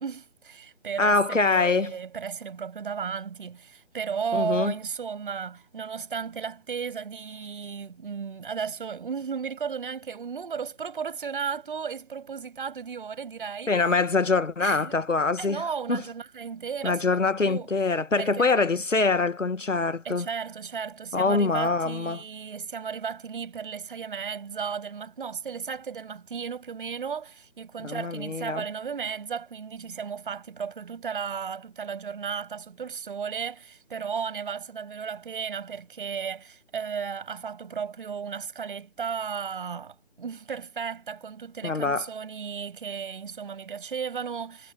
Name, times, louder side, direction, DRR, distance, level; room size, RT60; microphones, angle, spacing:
voice 1, 0.0-13.7 14.6-15.0 15.4-17.7 18.2-18.7 20.0-44.7, right 6 dB, 45° right, 7.4 m, -34 dB
voice 2, 1.0-1.9 4.3-4.7 13.7-15.6 15.9-16.0 16.8-20.3 21.1-22.2 27.8-28.6 41.6-42.1, left 3 dB, 85° left, 1.5 m, -24 dB
figure-of-eight pair, 155°, 36 cm